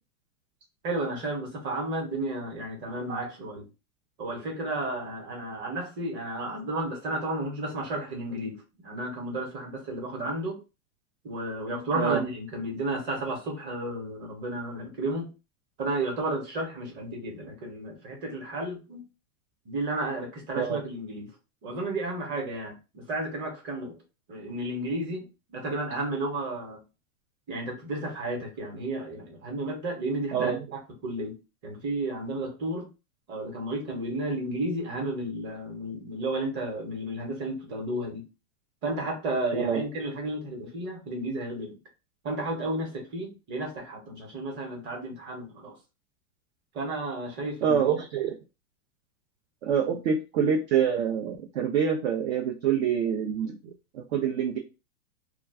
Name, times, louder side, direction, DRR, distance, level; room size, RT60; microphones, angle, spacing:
voice 1, 0.8-3.7 4.2-10.6 11.2-15.3 15.8-19.0 19.6-21.3 21.6-23.9 24.3-26.8 27.5-31.4 31.6-32.9 33.3-38.3 38.8-41.8 42.2-45.7 46.7-48.0 49.8-50.0, right 1 dB, 25° right, 1.0 m, -32 dB
voice 2, 47.6-48.4 49.6-54.6, right 7 dB, 50° right, 0.5 m, -26 dB
2.3 x 2.3 x 3.5 m
supercardioid pair, 145°, 44 cm